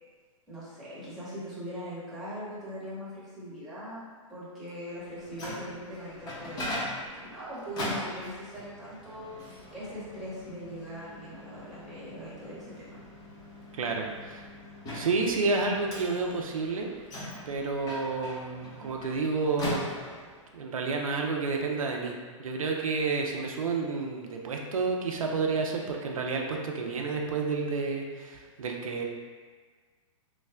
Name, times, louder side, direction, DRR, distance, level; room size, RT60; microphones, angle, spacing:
voice 1, 0.5-9.3 9.7-13.0, equal, ahead, -11 dB, 1.2 m, -41 dB
Microwave oven, 5.0-20.5, left 1 dB, 25° left, 0.8 m, -41 dB
voice 2, 13.7-14.5 14.9-16.9 17.5-19.9 20.5-22.1 22.4-29.0, right 4 dB, 90° right, 1 dB, 0.5 m, -30 dB
3.1 x 2.1 x 3.5 m, 1.5 s
hypercardioid pair, 125°, 17 cm